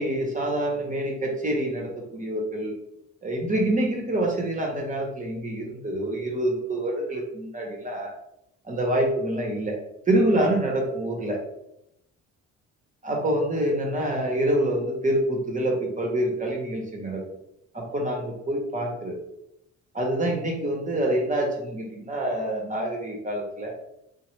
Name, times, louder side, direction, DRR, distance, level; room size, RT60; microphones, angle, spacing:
voice 1, 0.0-2.7 3.2-8.1 8.6-9.8 10.1-11.4 13.0-17.2 17.7-19.2 19.9-23.7, right 1 dB, 25° right, 0 dB, 0.8 m, -26 dB
3.1 x 2.1 x 3.0 m, 0.81 s
cardioid pair, 85°, 30 cm